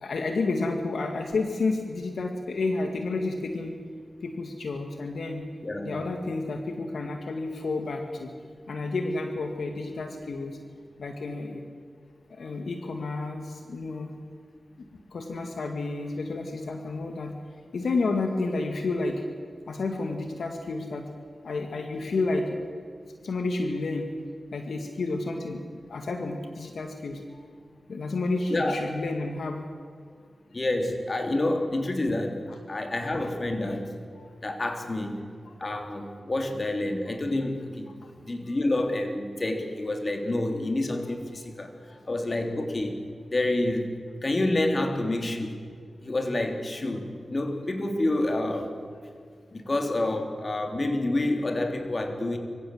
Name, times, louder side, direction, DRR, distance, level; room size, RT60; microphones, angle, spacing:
voice 1, 0.0-3.8 4.2-5.4 5.9-8.3 8.7-10.6 11.0-11.6 12.3-14.1 14.8-17.3 17.7-19.2 19.7-21.0 21.4-22.5 23.2-24.1 24.5-27.4 27.9-29.6 34.2-34.3 35.5-35.6 38.0-38.1 38.5-38.6 41.9-42.0, left 3 dB, 85° left, 4 dB, 2.0 m, -30 dB
voice 2, 30.5-32.4 32.7-33.9 34.4-35.2 35.6-37.9 38.2-41.7 42.0-42.9 43.3-43.9 44.2-45.6 46.0-48.7 49.5-52.4, left 2 dB, 40° left, 5 dB, 3.3 m, -28 dB
24.0 x 16.0 x 7.9 m, 2.2 s
cardioid pair, 60°, 0 cm